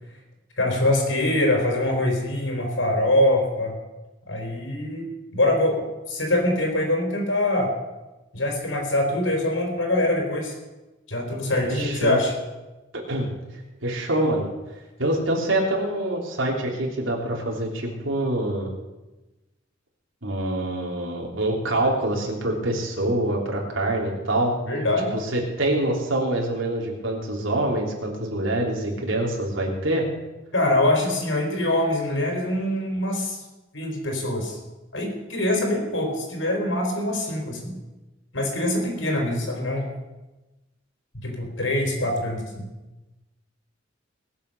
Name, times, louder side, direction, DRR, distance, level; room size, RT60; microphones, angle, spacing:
voice 1, 0.6-3.7 4.3-5.1 5.3-7.7 8.3-10.5 11.1-12.3 24.7-25.1 30.5-33.4 33.7-34.6 34.9-37.7 38.3-39.9 41.1-42.7, left 1 dB, 80° left, 2 dB, 4.2 m, -24 dB
voice 2, 11.6-12.2 12.9-13.3 13.8-14.5 15.0-18.7 20.2-24.5 25.1-30.1, right 1 dB, 90° right, -1 dB, 3.3 m, -25 dB
20.5 x 7.3 x 6.7 m, 1.1 s
head